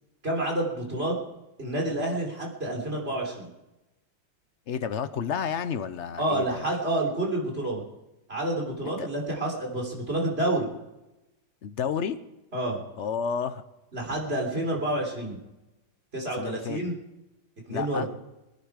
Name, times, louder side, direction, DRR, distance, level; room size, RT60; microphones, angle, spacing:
voice 1, 0.2-1.2 1.6-3.5 6.2-7.8 8.3-10.7 12.5-12.8 13.9-15.4 16.1-16.9 17.7-18.1, right 1 dB, 35° right, -1 dB, 3.6 m, -29 dB
voice 2, 4.7-6.6 9.0-9.1 11.6-12.2 13.0-13.6 16.4-16.8 17.7-18.1, left 7 dB, 55° left, 12 dB, 0.8 m, -30 dB
22.5 x 10.0 x 4.8 m, 0.97 s
omnidirectional pair, 1.9 m